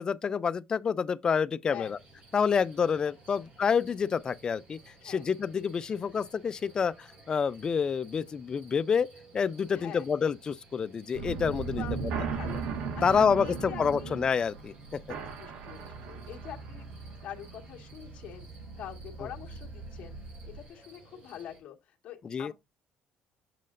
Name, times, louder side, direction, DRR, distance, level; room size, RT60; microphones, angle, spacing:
voice 1, 0.0-2.0 2.3-9.1 9.3-12.1 13.0-15.0 22.2-22.5, left 6 dB, 30° left, 0.4 m, -28 dB
sound 1, 1.8-21.6, right 2 dB, 45° right, 4.2 m, -56 dB
voice 2, 9.7-10.1 11.7-14.2 15.4-16.9 17.2-18.5 18.8-20.2 20.4-22.5, left 10 dB, 55° left, 1.6 m, -45 dB
sound 2, 11.1-20.7, right 5 dB, 85° right, 1.0 m, -38 dB
7.5 x 6.3 x 2.5 m
cardioid pair, 140°, 3 cm